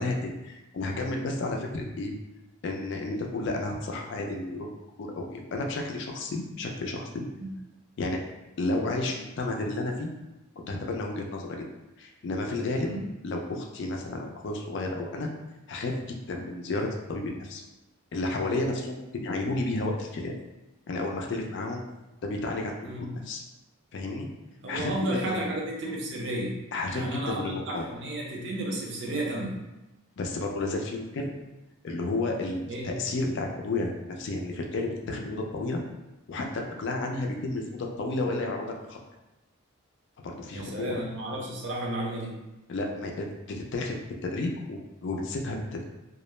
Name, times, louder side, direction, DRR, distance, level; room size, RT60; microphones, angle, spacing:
voice 1, 0.0-2.1 2.6-4.7 5.0-7.3 8.0-8.2 8.6-10.1 10.7-11.6 12.0-12.9 13.2-15.3 15.7-17.6 18.1-20.3 20.9-21.8 22.2-23.4 23.9-24.3 24.7-25.5 26.7-27.9 30.2-31.3 31.8-35.8 36.3-39.0 40.2-41.0 42.7-45.8, left 2 dB, 55° left, 2 dB, 0.3 m, -32 dB
voice 2, 24.6-26.5 26.9-29.6 32.7-32.9 40.5-42.4, right 1 dB, 55° right, -2 dB, 0.6 m, -32 dB
2.3 x 2.0 x 3.0 m, 0.99 s
head